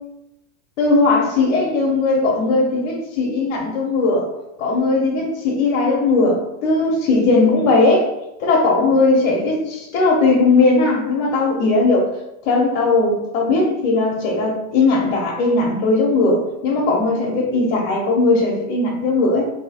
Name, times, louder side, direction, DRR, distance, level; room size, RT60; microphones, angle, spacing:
voice 1, 0.8-4.3 4.6-8.1 8.4-12.1 12.4-19.4, left 3 dB, 55° left, -2 dB, 1.0 m, -18 dB
3.0 x 2.8 x 4.2 m, 0.91 s
supercardioid pair, 160°, 41 cm